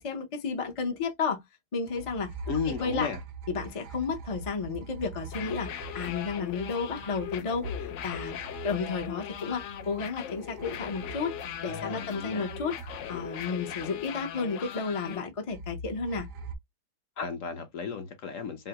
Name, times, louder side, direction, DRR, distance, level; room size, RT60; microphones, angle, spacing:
voice 1, 0.0-1.4 1.7-2.3 2.7-3.1 3.5-8.4 8.6-12.8 13.1-16.3, left 5 dB, 40° left, 0.4 m, -32 dB
sound 1, 1.9-12.2 12.5-14.3 15.5-16.5, right 3 dB, 75° right, 1.2 m, -43 dB
voice 2, 2.5-3.2 11.7-12.5 17.2-18.7, left 6 dB, 60° left, 1.0 m, -34 dB
sound 2, 5.2-15.2, left 10 dB, 80° left, 0.6 m, -39 dB
5.4 x 2.0 x 2.9 m
omnidirectional pair, 1.8 m